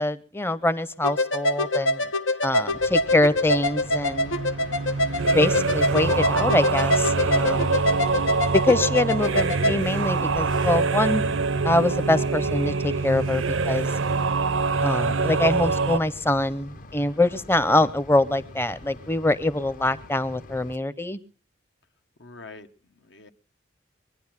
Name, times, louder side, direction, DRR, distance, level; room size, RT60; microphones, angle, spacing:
voice 1, 0.0-2.0 2.4-4.3 5.2-7.8 8.6-11.2 11.6-13.9 14.8-21.2, left 2 dB, 10° left, 15 dB, 0.7 m, -24 dB
sound 1, 1.0-9.7, left 1 dB, 90° left, 1.1 m, -25 dB
sound 2, 2.7-20.8, left 2 dB, 40° left, 0.8 m, -45 dB
sound 3, 3.7-16.0, right 4 dB, 85° right, 0.7 m, -25 dB
voice 2, 7.6-8.0 17.2-17.4 22.2-23.3, left 3 dB, 65° left, 6 dB, 1.0 m, -46 dB
23.0 x 10.5 x 5.9 m, 0.40 s
head